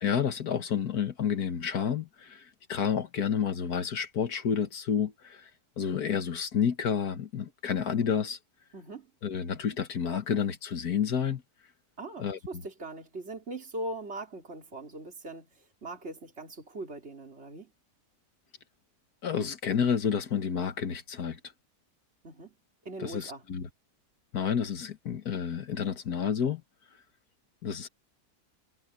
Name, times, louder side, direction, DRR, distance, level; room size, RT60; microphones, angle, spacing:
voice 1, 0.0-5.5 5.8-8.4 9.2-11.4 12.2-12.4 19.2-21.4 23.0-23.7 24.3-26.6 27.6-27.9, left 7 dB, 80° left, 1.9 m, -30 dB
voice 2, 8.7-9.1 12.0-17.7 22.2-22.6 22.9-23.4, right 2 dB, 45° right, 3.9 m, -41 dB
omnidirectional pair, 1.6 m